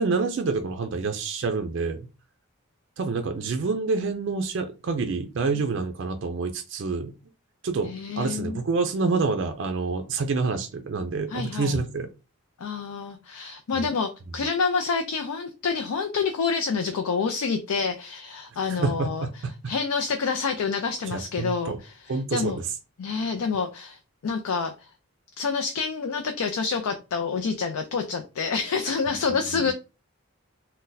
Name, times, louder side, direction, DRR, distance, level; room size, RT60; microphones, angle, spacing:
voice 1, 0.0-2.1 3.0-7.1 7.6-7.9 8.2-12.1 13.7-13.9 18.7-19.5 21.1-21.8 22.1-22.7 29.5-29.7, right 4 dB, 55° right, 0.4 m, -27 dB
voice 2, 7.8-8.6 11.3-11.8 12.6-19.2 19.7-22.6 23.0-24.7 25.4-29.7, left 5 dB, 90° left, 0.4 m, -28 dB
2.6 x 2.1 x 3.8 m
head